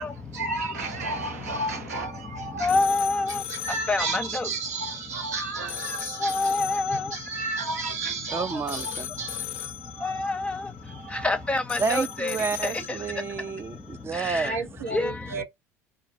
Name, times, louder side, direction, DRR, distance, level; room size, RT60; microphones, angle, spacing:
voice 1, 0.0-2.7 3.3-10.3 10.9-11.3 14.4-15.4, right 3 dB, 85° right, 0.9 m, -33 dB
voice 2, 2.6-3.4 3.9-4.5 6.2-7.1 10.0-10.6 11.2-12.4 14.2-14.5 14.9-15.1, left 2 dB, 15° left, 0.7 m, -26 dB
sound 1, 2.7-14.0, left 12 dB, 65° left, 0.4 m, -39 dB
voice 3, 8.3-9.1 11.8-14.8 15.3-15.4, right 5 dB, 30° right, 0.4 m, -30 dB
3.8 x 2.6 x 2.6 m
hypercardioid pair, 65°, 8 cm